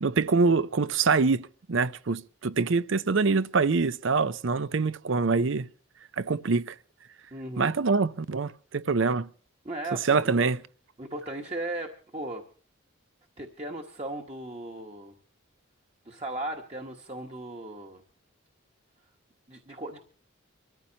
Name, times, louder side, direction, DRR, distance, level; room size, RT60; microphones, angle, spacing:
voice 1, 0.0-5.7 6.2-6.7 7.6-9.3 10.1-10.6, right 4 dB, 65° right, 0.6 m, -25 dB
voice 2, 7.3-7.7 9.6-10.4 11.0-12.4 13.4-15.1 16.0-18.0 19.5-20.0, right 1 dB, 30° right, 1.3 m, -37 dB
25.0 x 14.5 x 2.9 m
head